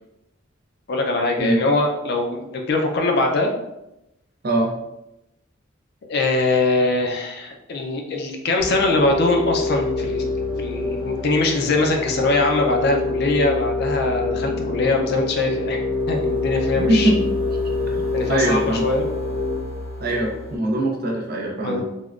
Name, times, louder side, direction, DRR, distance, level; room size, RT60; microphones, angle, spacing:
voice 1, 0.9-3.5 6.1-10.2 10.6-15.8 16.1-17.1 18.1-19.0 21.6-21.8, left 2 dB, 55° left, 3 dB, 0.4 m, -22 dB
sound 1, 8.6-20.6, left 3 dB, 5° right, 0.8 m, -26 dB
voice 2, 17.9-18.9 20.0-21.8, right 1 dB, 50° right, 0 dB, 0.6 m, -22 dB
3.5 x 2.1 x 2.4 m, 0.89 s
head